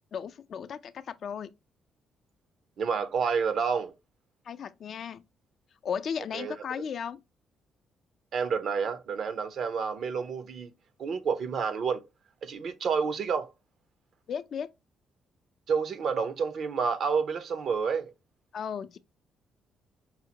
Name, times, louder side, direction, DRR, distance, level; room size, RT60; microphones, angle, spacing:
voice 1, 0.1-1.5 4.5-5.2 5.8-7.2 14.3-14.7 18.5-19.0, left 7 dB, 60° left, 0.4 m, -35 dB
voice 2, 2.8-3.9 6.3-6.5 8.3-10.7 11.0-12.0 12.4-13.5 15.7-18.1, right 6 dB, 65° right, 0.7 m, -29 dB
5.5 x 2.1 x 2.8 m
cardioid pair, 90°, 0 cm